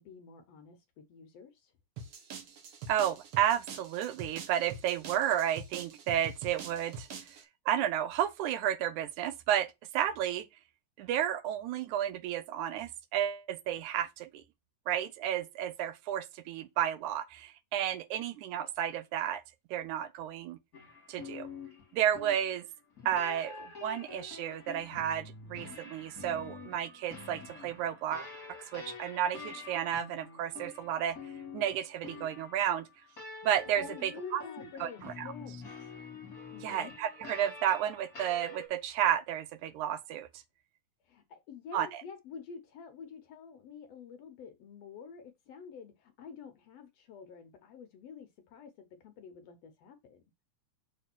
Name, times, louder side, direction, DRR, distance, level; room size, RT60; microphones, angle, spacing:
voice 1, 0.0-1.7 33.8-35.8 36.5-36.9 41.0-50.2, left 6 dB, 70° left, 1.7 m, -48 dB
sound 1, 2.0-7.4, right 5 dB, 55° right, 1.6 m, -45 dB
voice 2, 2.9-7.1 7.7-10.5 11.0-14.4 14.9-19.4 19.7-20.6 21.1-21.5 21.9-22.7 23.1-28.3 28.7-31.2 31.5-32.9 33.4-34.4 34.8-35.3 36.6-40.3 41.7-42.0, right 10 dB, 80° right, 2.1 m, -32 dB
sound 2, 20.7-38.7, left 4 dB, 30° left, 2.4 m, -47 dB
6.6 x 3.4 x 5.9 m
omnidirectional pair, 3.5 m